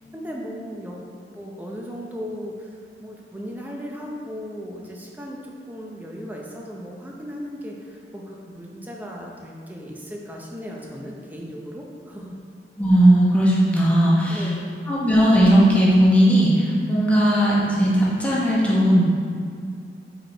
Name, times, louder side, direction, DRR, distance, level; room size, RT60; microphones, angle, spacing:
voice 1, 0.1-1.0 1.3-2.7 3.0-5.4 5.7-12.4 14.3-14.7, equal, 10° right, -2 dB, 0.6 m, -36 dB
voice 2, 12.8-14.5 14.9-19.0, equal, 10° left, -6 dB, 0.9 m, -17 dB
5.0 x 4.7 x 4.3 m, 2.2 s
head